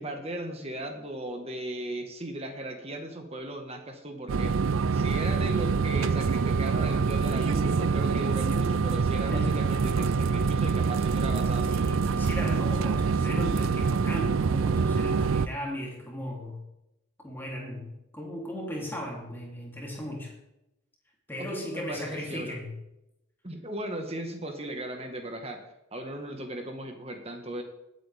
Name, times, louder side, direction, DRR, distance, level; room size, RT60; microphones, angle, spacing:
voice 1, 0.0-11.8 21.4-22.6 23.4-25.6 25.9-27.6, right 1 dB, 30° right, 4 dB, 1.6 m, -37 dB
sound 1, 4.3-15.5, right 5 dB, 70° right, 0.4 m, -25 dB
voice 2, 9.3-9.7 11.7-16.6 17.2-20.3 21.3-22.7, left 1 dB, 10° left, -2 dB, 3.3 m, -36 dB
19.5 x 8.6 x 3.6 m, 0.88 s
head